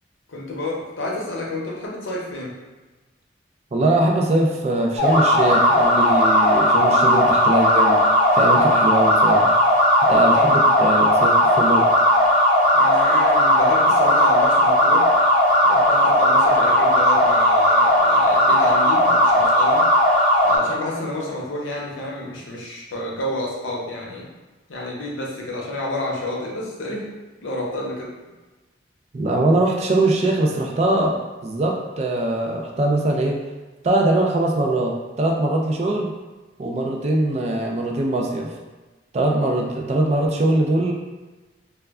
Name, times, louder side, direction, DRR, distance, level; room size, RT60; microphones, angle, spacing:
voice 1, 0.3-2.6 10.0-10.5 12.7-15.1 15.6-19.8 20.4-24.3 24.7-27.1 27.4-28.1, left 1 dB, 90° left, -3 dB, 0.7 m, -29 dB
voice 2, 3.7-8.0 8.3-9.5 10.1-11.9 29.1-31.2 31.4-33.4 33.8-36.1 36.6-38.5 39.1-40.9, right 2 dB, 35° right, 0 dB, 0.3 m, -21 dB
sound 1, 5.0-20.6, equal, 50° left, 0.7 m, -16 dB
2.2 x 2.1 x 3.4 m, 1.2 s
head